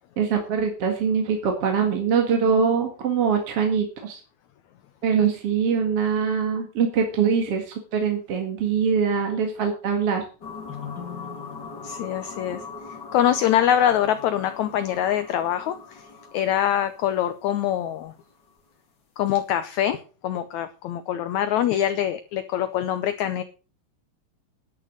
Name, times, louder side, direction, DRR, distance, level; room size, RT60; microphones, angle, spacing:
voice 1, 0.2-4.2 5.0-10.2, right 6 dB, 50° right, 3 dB, 2.5 m, -23 dB
sound 1, 10.4-18.0, left 5 dB, 35° left, 2.8 m, -40 dB
voice 2, 11.8-12.6 13.1-16.1 16.3-18.1 19.2-23.4, left 11 dB, 75° left, 11 dB, 1.9 m, -24 dB
11.0 x 9.8 x 6.5 m, 0.36 s
omnidirectional pair, 4.0 m